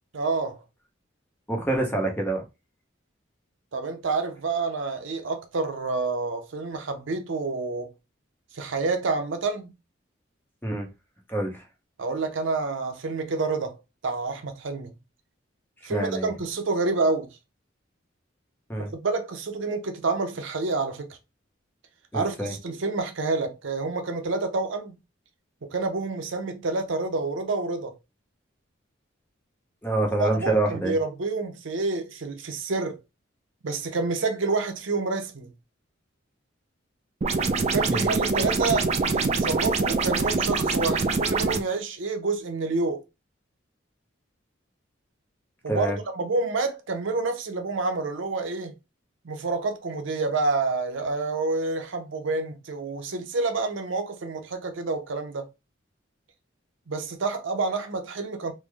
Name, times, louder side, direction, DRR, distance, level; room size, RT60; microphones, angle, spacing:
voice 1, 0.1-0.6 3.7-7.9 8.5-9.7 12.0-13.8 14.0-14.9 15.8-17.3 18.8-21.2 22.1-24.9 25.6-28.0 30.2-33.0 33.6-35.5 37.6-43.0 45.6-48.7 49.2-55.5 56.9-58.5, right 3 dB, 70° right, 0.6 m, -28 dB
voice 2, 1.5-2.4 10.6-10.9 11.3-11.6 15.9-16.3 18.7-18.9 22.1-22.5 29.8-31.0 37.9-38.1 45.7-46.0, right 2 dB, 10° left, 0.7 m, -26 dB
sound 1, 37.2-41.6, right 4 dB, 35° right, 0.3 m, -24 dB
3.2 x 2.0 x 3.3 m
head